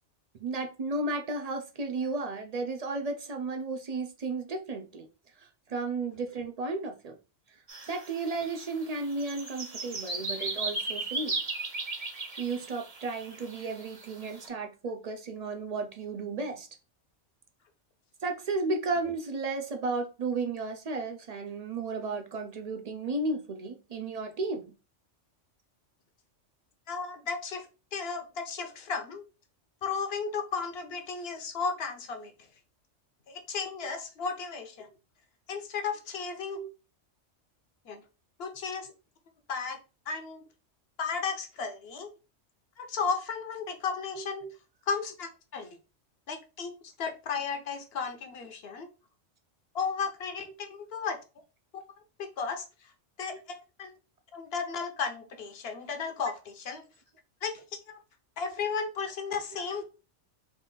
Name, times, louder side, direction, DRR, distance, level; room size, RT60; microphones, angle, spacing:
voice 1, 0.4-5.1 5.4-7.2 7.9-11.4 12.4-16.7 18.2-24.7 33.8-34.0 36.5-36.7 44.4-44.5, right 3 dB, 60° right, 6 dB, 0.4 m, -33 dB
sound 1, 7.7-14.5, right 3 dB, 35° right, 0.9 m, -36 dB
voice 2, 26.9-29.2 29.8-32.3 33.3-34.9 35.5-36.6 37.8-38.0 38.4-38.9 39.5-39.8 40.1-40.4 41.0-42.1 42.8-44.4 44.9-45.8 46.3-46.7 47.0-48.9 49.7-51.2 51.7-51.8 52.2-52.9 53.2-53.9 54.3-56.8 57.4-58.0 58.4-59.8, left 5 dB, 60° left, 6 dB, 0.9 m, -34 dB
3.9 x 2.5 x 3.7 m, 0.32 s
omnidirectional pair, 1.2 m